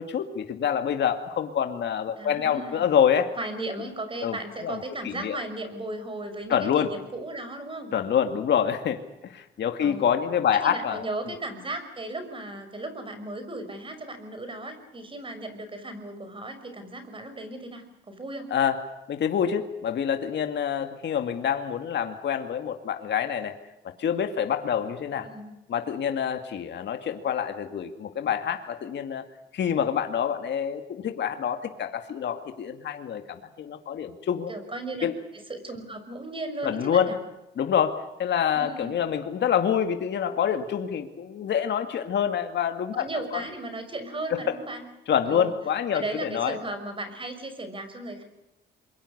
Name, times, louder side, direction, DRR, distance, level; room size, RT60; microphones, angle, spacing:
voice 1, 0.0-3.3 4.2-4.4 4.6-5.4 6.5-6.9 7.9-11.0 18.5-18.8 19.1-23.5 24.0-25.3 25.7-29.3 29.5-34.5 35.0-35.1 36.6-37.1 37.6-43.0 43.3-43.4 44.3-44.4 45.1-46.6, left 8 dB, 60° left, 6 dB, 2.2 m, -26 dB
voice 2, 2.2-2.9 3.4-7.9 9.8-10.2 10.6-18.5 25.2-25.5 34.5-35.1 35.3-37.2 38.5-38.9 42.9-44.8 45.3-45.5 45.9-48.2, right 2 dB, 25° right, 9 dB, 6.0 m, -36 dB
27.0 x 23.0 x 6.7 m, 0.90 s
cardioid pair, 90°, 20 cm